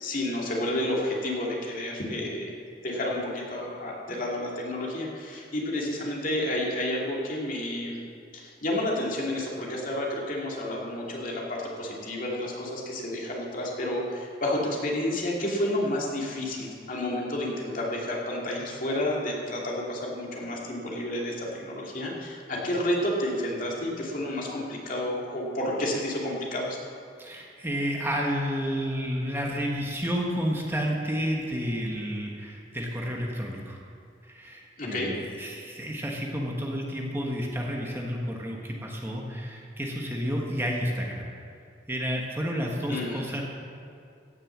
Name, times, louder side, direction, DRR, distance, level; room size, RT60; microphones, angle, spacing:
voice 1, 0.0-8.0 8.3-26.8 34.8-35.1 42.9-43.2, left 1 dB, 50° left, -3 dB, 2.6 m, -30 dB
voice 2, 27.2-33.8 34.2-41.3 41.9-43.4, equal, 15° right, -1 dB, 1.3 m, -31 dB
16.5 x 6.7 x 7.3 m, 2.5 s
head